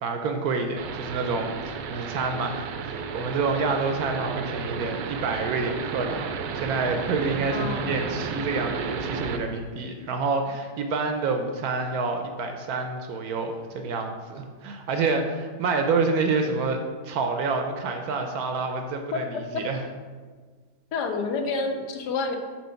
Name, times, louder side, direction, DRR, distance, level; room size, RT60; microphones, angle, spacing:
voice 1, 0.0-16.8 17.0-19.8, right 4 dB, 70° right, 5 dB, 1.0 m, -28 dB
sound 1, 0.8-9.4, right 5 dB, 85° right, 1.2 m, -33 dB
voice 2, 7.5-8.0 19.1-19.2 20.9-22.4, left 4 dB, 75° left, 5 dB, 1.2 m, -28 dB
7.4 x 2.9 x 5.6 m, 1.5 s
omnidirectional pair, 1.8 m